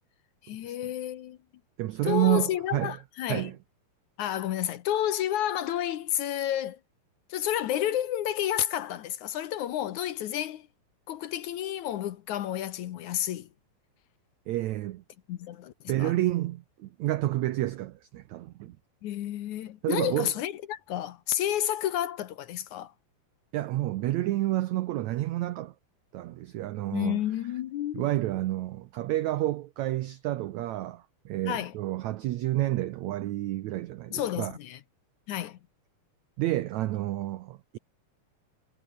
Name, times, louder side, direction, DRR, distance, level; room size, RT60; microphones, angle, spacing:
voice 1, 0.4-1.4 2.1-3.5 4.2-6.8 7.3-10.7 11.1-13.5 15.3-15.7 16.0-16.1 19.0-22.9 26.9-28.0 31.4-31.7 34.1-34.8 35.3-35.6, left 11 dB, 65° left, 2.1 m, -30 dB
voice 2, 1.8-3.0 3.3-3.6 14.5-15.0 15.9-18.8 19.8-20.3 23.5-25.7 26.1-27.2 27.9-34.5 36.4-37.8, right 15 dB, 90° right, 1.6 m, -29 dB
omnidirectional pair, 4.3 m